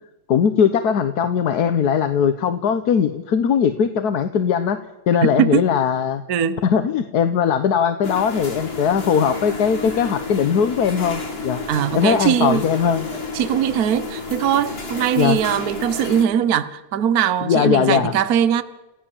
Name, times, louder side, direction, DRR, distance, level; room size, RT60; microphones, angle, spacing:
voice 1, 0.3-4.8 5.1-6.2 6.6-11.6 11.9-13.1 15.2-15.4 17.4-18.1, left 7 dB, 60° left, 8 dB, 1.4 m, -19 dB
voice 2, 6.3-6.6 11.7-12.6 13.3-18.6, right 9 dB, 55° right, 14 dB, 1.3 m, -20 dB
sound 1, 8.0-16.3, left 3 dB, 30° left, 2.6 m, -31 dB
29.0 x 16.0 x 7.2 m, 1.0 s
omnidirectional pair, 2.1 m